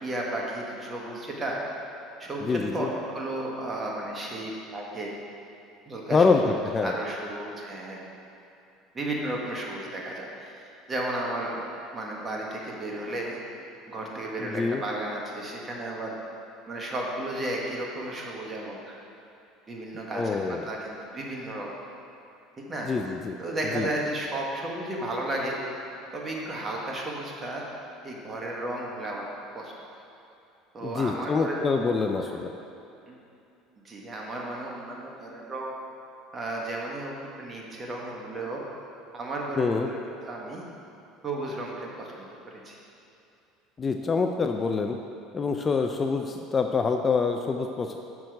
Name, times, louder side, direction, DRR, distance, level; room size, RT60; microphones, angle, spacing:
voice 1, 0.0-1.6 2.2-5.1 5.9-8.0 8.9-10.6 10.9-11.7 11.9-13.4 13.9-16.1 16.7-18.9 19.7-21.8 22.7-22.9 23.4-25.6 26.1-27.6 28.0-29.2 29.5-30.0 30.7-32.3 33.1-33.2 33.8-35.7 36.3-38.6 39.1-40.0 40.2-40.6 41.2-42.8, right 1 dB, 25° right, -2 dB, 1.4 m, -33 dB
voice 2, 2.4-2.9 6.1-6.4 6.7-6.9 14.4-14.8 20.1-20.6 22.9-23.4 23.7-23.9 30.8-32.5 39.5-39.9 43.8-45.0 45.3-48.0, left 4 dB, 30° left, 5 dB, 0.4 m, -25 dB
6.2 x 6.0 x 4.6 m, 2.7 s
supercardioid pair, 105°, 0 cm